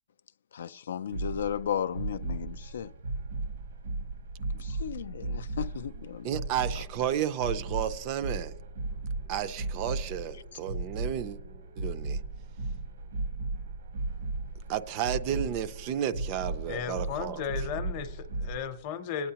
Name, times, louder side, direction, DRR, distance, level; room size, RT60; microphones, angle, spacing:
voice 1, 0.5-2.9 4.5-6.3 6.8-6.9, left 8 dB, 80° left, 0.3 m, -35 dB
sound 1, 1.1-18.6, right 2 dB, 75° right, 0.9 m, -36 dB
voice 2, 6.2-8.5 9.3-11.4 11.8-12.2 14.7-17.4, right 10 dB, 30° right, 0.4 m, -32 dB
voice 3, 16.7-19.3, left 7 dB, 30° left, 0.7 m, -35 dB
21.0 x 9.0 x 2.8 m
hypercardioid pair, 170°, 0 cm